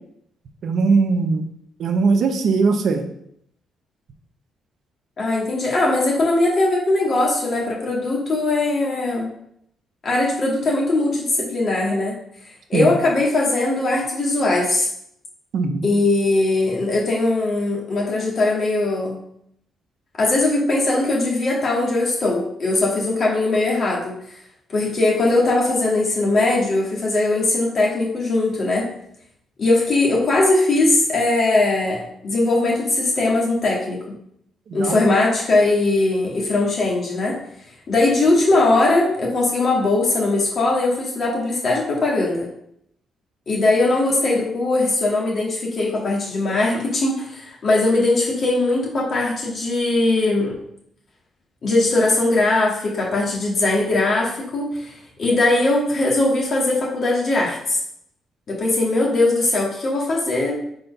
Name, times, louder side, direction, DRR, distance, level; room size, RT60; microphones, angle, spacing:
voice 1, 0.6-1.5 1.8-3.0 12.7-12.9 15.5-15.9 34.7-35.0, right 4 dB, 65° right, 6 dB, 0.7 m, -20 dB
voice 2, 5.2-9.3 10.0-12.2 12.7-14.9 15.8-19.2 20.2-24.2 24.7-28.9 29.6-34.0 34.7-37.4 37.9-42.5 43.5-50.5 51.6-57.8 58.5-60.6, left 2 dB, 50° left, -3 dB, 2.1 m, -20 dB
4.5 x 4.3 x 5.3 m, 0.72 s
cardioid pair, 90°, 0 cm